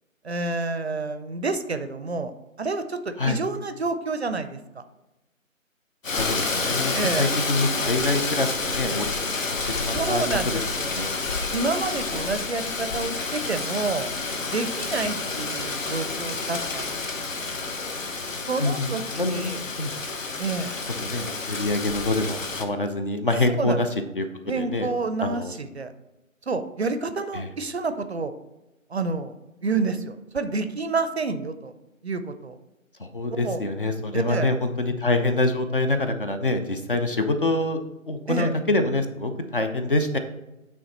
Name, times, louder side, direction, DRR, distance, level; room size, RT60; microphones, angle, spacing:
voice 1, 0.2-2.3 2.6-4.8 6.9-7.3 9.9-11.0 11.5-14.1 14.5-17.1 17.4-17.6 18.5-19.6 20.4-20.8 23.6-23.8 24.5-25.9 26.5-28.3 28.9-31.7 32.0-32.6 33.3-33.6 34.1-34.5 38.3-38.5, right 3 dB, 50° right, 10 dB, 0.5 m, -29 dB
Rain, 6.0-22.7, left 3 dB, 70° left, 1.0 m, -29 dB
voice 2, 6.2-9.1 9.4-10.2 10.9-11.1 18.6-18.9 19.2-19.9 21.0-23.9 24.2-24.3 24.6-24.9 25.2-25.5 27.4-27.5 33.0-40.2, left 2 dB, 40° left, 7 dB, 0.5 m, -25 dB
8.3 x 3.4 x 4.1 m, 1.0 s
figure-of-eight pair, 150°, 41 cm